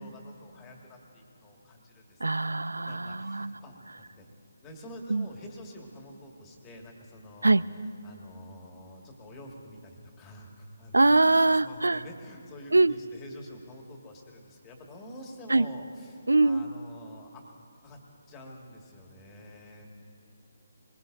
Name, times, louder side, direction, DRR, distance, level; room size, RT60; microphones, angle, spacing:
voice 1, 0.0-2.4 2.8-3.8 4.2-4.3 4.6-7.7 8.0-17.4 17.8-18.0 18.3-19.9, left 1 dB, 20° left, 0 dB, 2.0 m, -47 dB
voice 2, 2.2-3.5 5.1-5.3 7.4-7.6 10.9-12.0 12.7-12.9 15.5-15.7 16.3-16.6, right 2 dB, 75° right, 18 dB, 0.4 m, -22 dB
21.5 x 21.5 x 2.7 m, 2.6 s
figure-of-eight pair, 145°, 0 cm